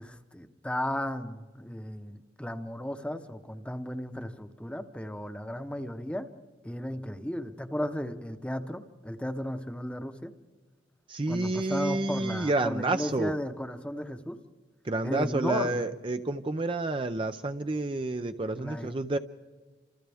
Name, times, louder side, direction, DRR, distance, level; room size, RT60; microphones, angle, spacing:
voice 1, 0.0-6.3 6.6-10.3 11.3-14.4 15.0-15.8 18.5-18.9, equal, 5° left, 9 dB, 0.9 m, -35 dB
voice 2, 11.1-13.3 14.8-19.2, right 2 dB, 30° right, 8 dB, 0.5 m, -29 dB
29.0 x 27.0 x 3.5 m, 1.4 s
head